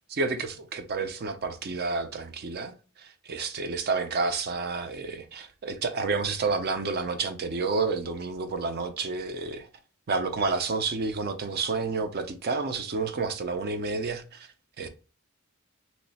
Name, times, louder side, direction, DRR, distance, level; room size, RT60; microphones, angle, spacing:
voice 1, 0.1-9.7 10.1-14.5 14.8-14.9, right 4 dB, 50° right, 0.5 m, -30 dB
3.0 x 2.1 x 3.9 m
head